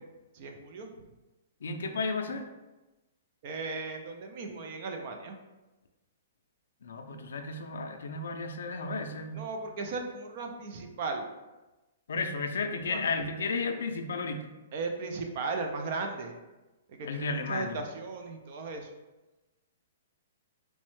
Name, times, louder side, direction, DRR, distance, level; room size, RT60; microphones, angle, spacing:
voice 1, 0.3-0.9 3.4-5.4 9.3-11.3 12.9-13.0 14.7-16.3 17.0-18.9, right 3 dB, 35° right, 4 dB, 0.3 m, -36 dB
voice 2, 1.6-2.5 6.8-9.4 12.1-14.5 17.0-17.8, left 3 dB, 80° left, 6 dB, 0.3 m, -33 dB
3.0 x 2.1 x 3.0 m, 1.1 s
hypercardioid pair, 175°, 0 cm